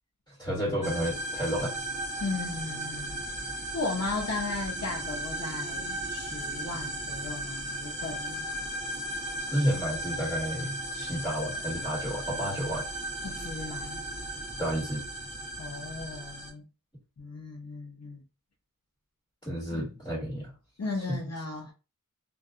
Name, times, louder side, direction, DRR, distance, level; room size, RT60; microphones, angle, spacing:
voice 1, 0.3-1.7 9.5-12.8 14.6-15.0 19.4-20.5 21.1-21.2, equal, 15° left, 1.5 m, -31 dB
sound 1, 0.8-16.5, right 1 dB, 20° right, 0.8 m, -36 dB
voice 2, 2.2-3.2 3.7-8.5 13.2-14.0 15.6-16.6 17.2-18.2 19.7-19.9 20.8-21.7, left 3 dB, 50° left, 0.6 m, -36 dB
2.6 x 2.3 x 2.4 m
wide cardioid pair, 50°, 33 cm